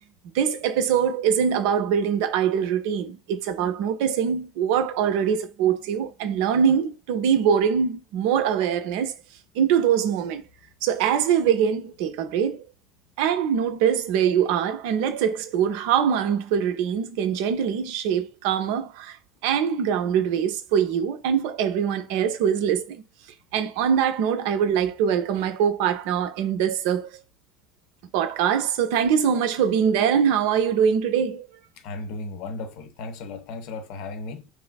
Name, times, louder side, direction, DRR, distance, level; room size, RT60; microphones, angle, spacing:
voice 1, 0.3-9.1 9.6-10.4 10.8-12.6 13.2-19.2 19.4-23.0 23.5-27.1 28.1-31.5, right 8 dB, 60° right, 0.4 m, -23 dB
voice 2, 31.8-34.5, left 3 dB, 60° left, 0.4 m, -35 dB
3.0 x 2.4 x 2.2 m
figure-of-eight pair, 65°, 0 cm